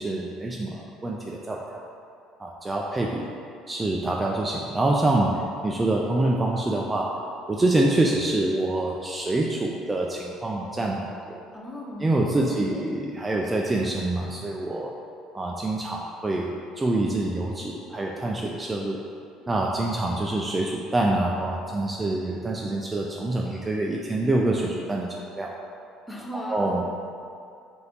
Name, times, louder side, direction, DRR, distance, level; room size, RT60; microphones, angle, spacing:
voice 1, 0.0-1.6 2.4-3.2 3.7-5.4 5.6-7.1 7.5-11.4 12.0-14.9 15.3-19.0 19.5-25.5 26.3-26.8, right 2 dB, 20° right, -1 dB, 0.3 m, -26 dB
voice 2, 11.5-12.1 12.5-12.9 26.1-26.9, equal, 15° left, -3 dB, 0.7 m, -37 dB
3.2 x 2.6 x 4.2 m, 2.4 s
hypercardioid pair, 70°, 0 cm